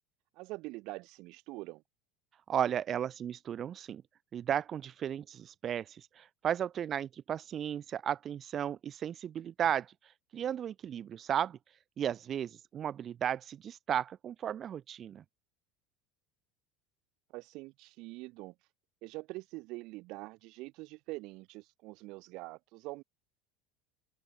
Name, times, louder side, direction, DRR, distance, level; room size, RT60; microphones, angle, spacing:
voice 1, 0.4-1.8 17.3-18.5 19.0-23.0, right 22 dB, 50° right, 2.3 m, -44 dB
voice 2, 2.5-4.0 4.3-15.2, right 9 dB, 25° right, 0.9 m, -35 dB
cardioid pair, 170°, 0 cm